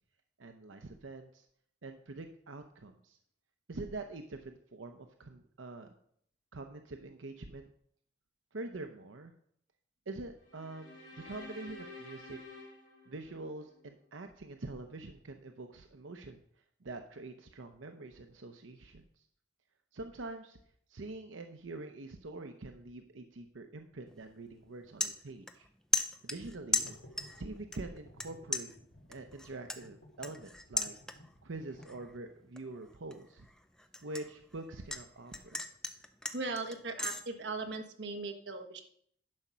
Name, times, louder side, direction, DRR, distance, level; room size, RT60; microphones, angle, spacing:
voice 1, 0.4-1.5 1.8-3.2 3.7-5.9 6.5-7.7 8.5-9.3 10.1-12.4 13.1-16.4 16.8-19.3 19.9-20.6 20.9-25.7 26.2-27.0 27.4-28.7 29.1-30.9 31.4-33.5 34.0-35.6, right 2 dB, 90° right, 6 dB, 0.7 m, -45 dB
sound 1, 10.4-13.8, left 2 dB, 65° left, 4.0 m, -50 dB
sound 2, 24.1-24.3 24.7-25.7 25.9-27.4 27.7-28.3 28.5-31.4 31.8-32.2 32.6-35.0 35.3-37.2, left 2 dB, 5° left, 0.5 m, -36 dB
sound 3, 26.3-32.4, equal, 90° left, 2.9 m, -57 dB
voice 2, 36.3-38.8, right 3 dB, 65° right, 6 dB, 1.3 m, -38 dB
11.0 x 5.6 x 6.1 m, 0.65 s
head